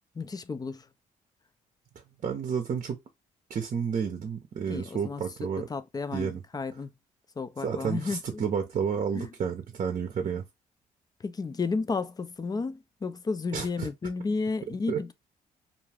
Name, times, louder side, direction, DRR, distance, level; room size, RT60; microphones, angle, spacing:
voice 1, 0.1-0.9 4.7-6.9 7.4-8.4 9.1-9.3 11.2-15.1, left 4 dB, 25° left, 0.4 m, -33 dB
voice 2, 2.2-3.0 3.5-5.7 6.1-6.4 7.6-10.4 13.5-13.9 14.9-15.0, right 7 dB, 50° right, 0.6 m, -31 dB
2.5 x 2.3 x 3.3 m
supercardioid pair, 70°, 15 cm